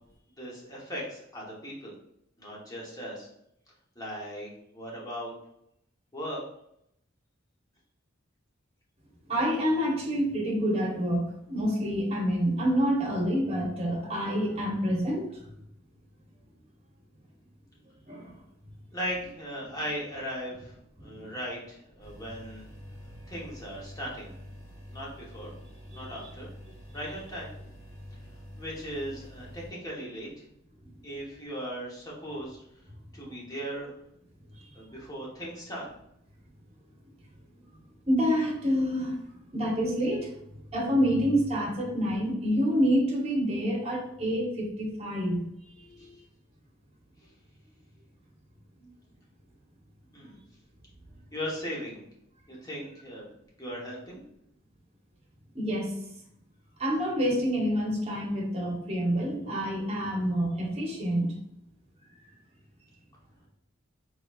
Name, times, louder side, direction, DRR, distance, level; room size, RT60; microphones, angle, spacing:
voice 1, 0.4-1.9 2.4-3.3 3.9-5.3 6.1-6.4 18.9-22.6 23.3-24.3 24.9-25.5 25.9-26.5 26.9-27.5 28.6-30.4 31.0-32.6 33.1-33.9 34.7-35.9 46.0-46.1 47.2-47.3 50.1-50.4 51.3-52.0 52.5-53.3 53.6-54.2, equal, 20° left, -4 dB, 1.0 m, -38 dB
voice 2, 9.3-15.4 18.1-18.3 21.0-21.3 25.9-26.3 34.6-34.7 38.1-39.2 39.5-45.4 45.7-46.1 55.5-55.9 56.8-61.3, equal, 30° right, -2 dB, 1.0 m, -28 dB
sound 1, 22.0-29.7, equal, 75° left, 1.2 m, -47 dB
3.9 x 3.1 x 2.4 m, 0.76 s
head